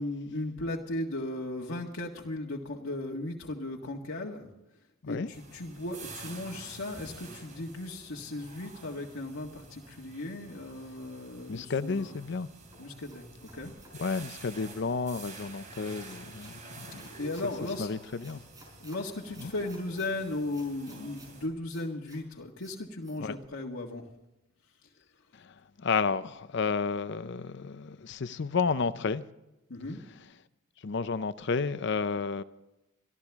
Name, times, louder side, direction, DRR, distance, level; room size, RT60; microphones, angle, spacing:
voice 1, 0.0-4.5 5.1-12.2 12.8-13.7 17.2-17.9 18.8-24.1 24.8-24.9 29.7-30.0, left 2 dB, 85° left, 1.8 m, -36 dB
sound 1, 5.3-21.5, right 3 dB, 40° right, 3.7 m, -49 dB
voice 2, 11.5-12.5 14.0-17.0 17.8-18.4 23.2-23.3 25.4-25.5 25.8-29.2 30.8-32.4, left 5 dB, 60° left, 0.6 m, -31 dB
sound 2, 12.7-14.7 15.3-16.6 17.0-17.8 18.2-19.0 19.3-20.1 20.5-21.3 21.7-22.2 22.6-22.7 23.0-23.2, right 1 dB, 20° right, 5.3 m, -55 dB
24.0 x 13.5 x 3.6 m
head